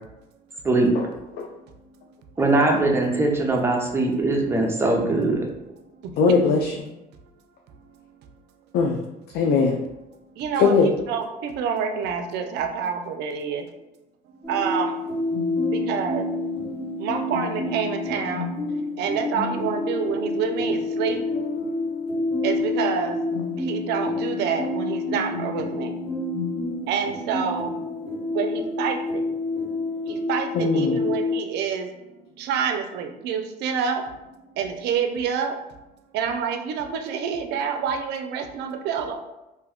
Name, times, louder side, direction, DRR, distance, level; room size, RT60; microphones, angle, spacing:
voice 1, 2.4-5.4, right 2 dB, 15° right, 0 dB, 0.6 m, -21 dB
voice 2, 6.2-6.8 8.7-9.0 9.3-9.8 10.6-10.9 30.5-31.0, left 5 dB, 75° left, 1 dB, 0.4 m, -20 dB
voice 3, 10.4-13.6 14.5-15.0 15.7-16.3 17.0-18.5 19.0-21.2 22.4-23.2 23.6-25.9 26.9-27.7 28.3-29.2 30.1-31.9 32.4-34.0 34.6-35.6 36.1-39.2, right 7 dB, 80° right, 5 dB, 0.4 m, -27 dB
sound 1, 14.4-31.4, left 2 dB, 15° left, 1.0 m, -28 dB
2.6 x 2.2 x 3.5 m, 0.96 s
cardioid pair, 110°, 17 cm